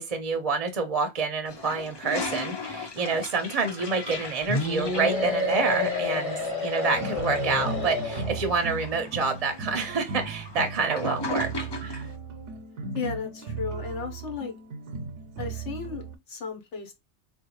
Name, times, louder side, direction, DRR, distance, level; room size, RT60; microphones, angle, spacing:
voice 1, 0.0-12.1, right 4 dB, 40° right, 0.6 m, -28 dB
Toilet flush, 1.5-12.1, left 2 dB, 40° left, 0.4 m, -38 dB
sound 1, 4.5-8.7, left 2 dB, 15° left, 1.3 m, -29 dB
sound 2, 6.9-16.2, right 4 dB, 85° right, 0.9 m, -36 dB
voice 2, 12.9-14.5 15.4-16.9, left 5 dB, 80° left, 1.3 m, -34 dB
3.7 x 2.5 x 3.0 m
omnidirectional pair, 1.2 m